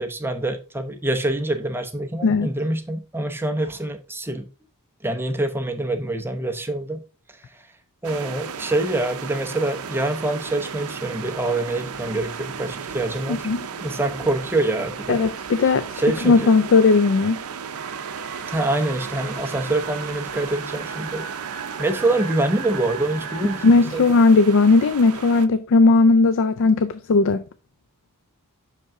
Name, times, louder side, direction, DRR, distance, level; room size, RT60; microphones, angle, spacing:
voice 1, 0.0-4.5 5.0-7.0 8.0-15.2 16.0-16.5 18.5-21.3 21.8-24.0, right 2 dB, 10° right, 0.8 m, -25 dB
sound 1, 8.0-25.5, right 6 dB, 75° right, 0.6 m, -35 dB
voice 2, 13.3-13.7 15.1-15.9 16.2-17.4 23.6-27.4, left 3 dB, 60° left, 0.4 m, -17 dB
sound 2, 17.7-23.8, right 6 dB, 50° right, 0.9 m, -38 dB
6.0 x 5.4 x 3.5 m
head